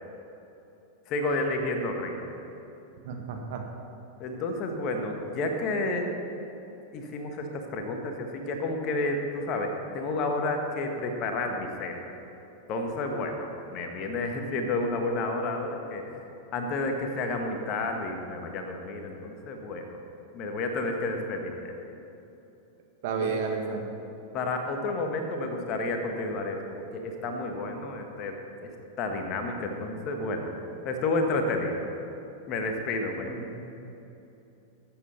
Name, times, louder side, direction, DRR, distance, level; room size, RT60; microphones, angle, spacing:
voice 1, 1.1-2.3 4.2-6.1 6.9-12.0 12.7-16.2 16.5-20.0 20.3-21.9 23.2-23.4 24.3-30.6 30.8-31.9 32.5-33.3, left 2 dB, 35° left, 4 dB, 1.5 m, -31 dB
voice 2, 3.0-3.6 23.0-23.9 33.3-33.7, right 5 dB, 50° right, 3 dB, 1.5 m, -32 dB
13.5 x 8.2 x 5.8 m, 2.9 s
figure-of-eight pair, 90°, 0 cm